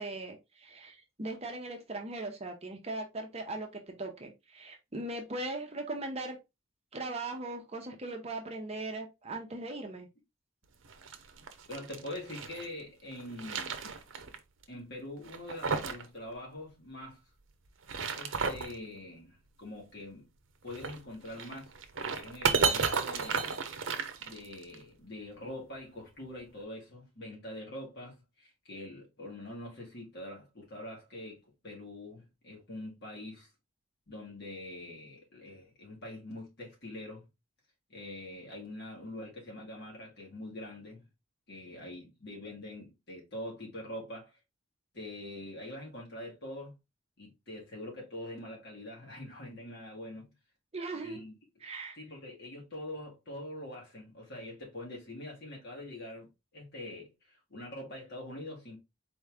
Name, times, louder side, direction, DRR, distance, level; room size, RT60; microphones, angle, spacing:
voice 1, 0.0-6.4 6.9-10.1 50.7-51.2 51.6-52.0, right 2 dB, 30° right, 0.8 m, -39 dB
sound 1, 10.8-12.7 13.1-14.4 14.6-14.7 15.2-16.1 16.3-16.4 17.7-18.7 20.7-24.7, right 5 dB, 65° right, 0.7 m, -33 dB
voice 2, 11.7-13.9 14.7-17.2 18.1-20.3 20.6-21.7 22.2-23.5 24.2-33.5 34.1-37.3 37.9-41.1 41.5-44.3 44.9-46.7 47.2-50.3 51.0-51.3 52.0-58.8, left 1 dB, 55° left, 2.2 m, -44 dB
4.3 x 3.1 x 3.5 m
head